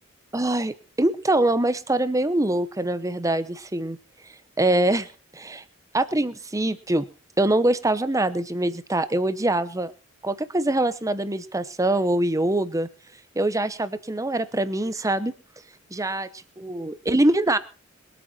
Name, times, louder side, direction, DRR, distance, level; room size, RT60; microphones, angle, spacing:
voice 1, 0.3-4.0 4.6-5.1 5.3-5.6 5.9-7.0 7.4-9.9 10.2-12.9 13.3-15.3 15.9-16.3 16.6-17.6, right 1 dB, 15° right, 14 dB, 0.9 m, -23 dB
22.0 x 8.7 x 4.4 m, 0.35 s
head